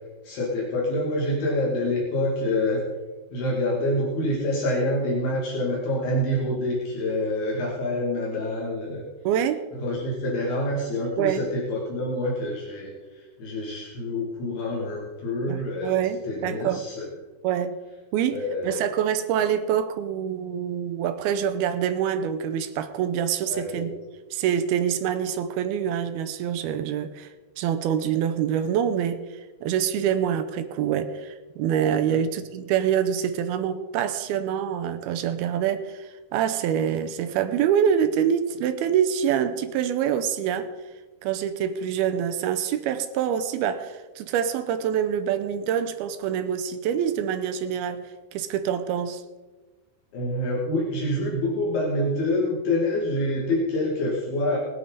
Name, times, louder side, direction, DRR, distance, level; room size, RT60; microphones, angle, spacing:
voice 1, 0.2-2.8 3.3-9.0 9.8-16.0 16.2-17.1 18.3-18.8 23.5-23.9 32.0-32.2 50.1-54.6, left 1 dB, 70° left, 4.2 m, -27 dB
voice 2, 9.2-9.6 11.2-11.4 15.5-16.9 17.4-17.8 18.1-23.9 24.3-27.3 27.6-29.2 29.6-40.7 41.2-49.2, right 9 dB, 80° right, 2.5 m, -25 dB
20.0 x 9.5 x 4.0 m
omnidirectional pair, 4.8 m